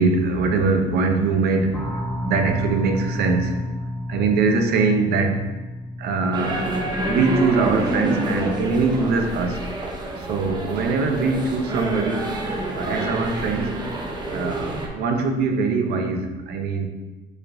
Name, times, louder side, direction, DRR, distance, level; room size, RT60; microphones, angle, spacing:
voice 1, 0.0-3.6 4.1-5.5 6.0-6.6 7.1-9.6 10.2-12.4 12.7-13.8 14.3-16.9, right 4 dB, 70° right, 6 dB, 0.6 m, -22 dB
sound 1, 1.7-8.1, equal, 10° left, 0.5 m, -31 dB
sound 2, 6.3-14.9, right 2 dB, 25° right, 0.7 m, -28 dB
4.5 x 4.4 x 2.5 m, 1.1 s
cardioid pair, 110°, 17 cm